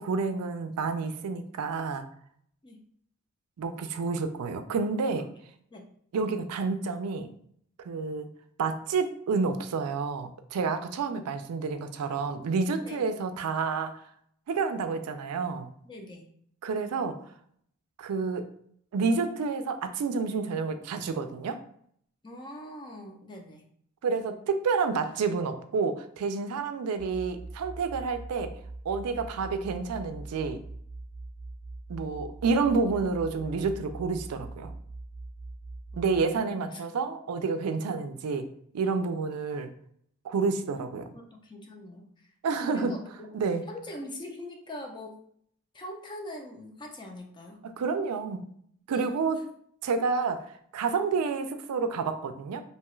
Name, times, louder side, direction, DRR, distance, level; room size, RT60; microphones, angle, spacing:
voice 1, 0.0-2.1 3.6-5.3 6.1-7.3 7.8-8.3 8.6-14.0 14.5-15.7 16.6-17.2 18.0-18.5 18.9-21.6 24.0-28.5 28.9-30.6 31.9-34.7 36.0-38.5 38.7-39.7 40.2-41.1 42.4-42.9 43.3-43.6 47.8-48.4 48.9-49.4 49.8-52.6, right 4 dB, 90° right, 8 dB, 0.4 m, -29 dB
voice 2, 15.8-16.3 22.2-23.7 35.9-36.8 41.1-42.3 42.7-43.3 43.7-45.2 45.7-47.6 48.9-49.2, left 1 dB, 20° left, 2 dB, 0.4 m, -43 dB
sound 1, 27.0-36.2, right 2 dB, 55° right, 0.7 m, -42 dB
2.8 x 2.3 x 3.0 m, 0.65 s
head